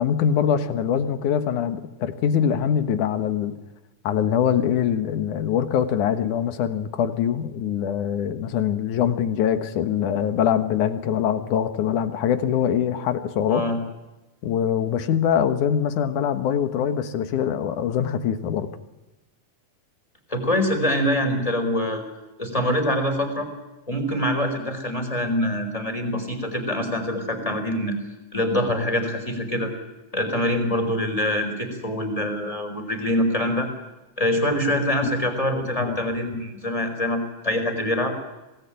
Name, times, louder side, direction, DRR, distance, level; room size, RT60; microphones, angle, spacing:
voice 1, 0.0-3.5 4.0-13.6 14.4-18.7 35.8-36.0, left 8 dB, 65° left, 10 dB, 2.7 m, -23 dB
voice 2, 20.3-22.0 22.4-23.5 23.9-28.0 28.3-29.7 30.1-33.7 34.2-38.1, left 1 dB, 10° left, 5 dB, 4.4 m, -24 dB
25.5 x 18.5 x 9.2 m, 1.1 s
omnidirectional pair, 4.2 m